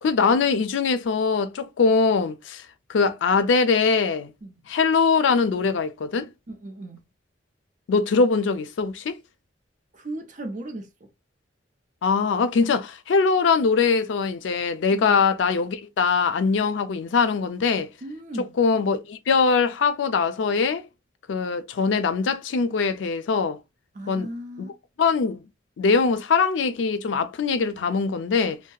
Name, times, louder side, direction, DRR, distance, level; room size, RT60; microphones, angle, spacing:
voice 1, 0.0-2.6 2.9-4.3 4.7-6.3 7.9-9.2 12.0-17.9 18.6-20.9 21.3-23.6 24.1-24.3 24.6-24.7 25.0-25.4 25.8-28.6, left 5 dB, 85° left, 0.4 m, -22 dB
voice 2, 6.5-7.0 9.9-11.1 14.9-15.2 18.0-18.5 23.9-24.8, right 1 dB, 45° right, 0.6 m, -36 dB
2.7 x 2.2 x 2.2 m
head